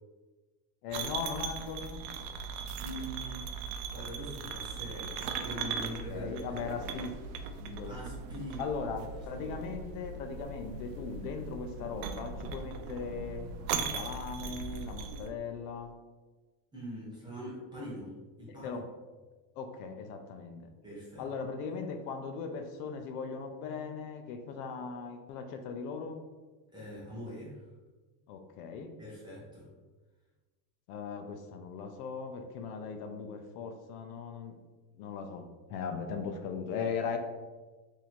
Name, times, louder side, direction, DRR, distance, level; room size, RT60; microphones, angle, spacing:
voice 1, 0.8-2.0 5.8-7.1 7.7-8.0 8.6-15.9 18.5-18.9 19.6-20.7 21.2-26.2 28.3-28.9 30.9-34.6 35.0-35.4 35.7-37.2, left 5 dB, 65° left, 6 dB, 0.6 m, -39 dB
sound 1, 0.9-15.3, right 5 dB, 75° right, 0.6 m, -39 dB
voice 2, 2.8-3.4 3.9-7.1 7.9-8.8 9.4-9.7 16.7-18.1 18.4-18.8 20.8-21.3 26.7-27.6 29.0-29.7, equal, 10° right, -7 dB, 0.5 m, -43 dB
3.0 x 2.7 x 4.1 m, 1.3 s
cardioid pair, 165°, 50 cm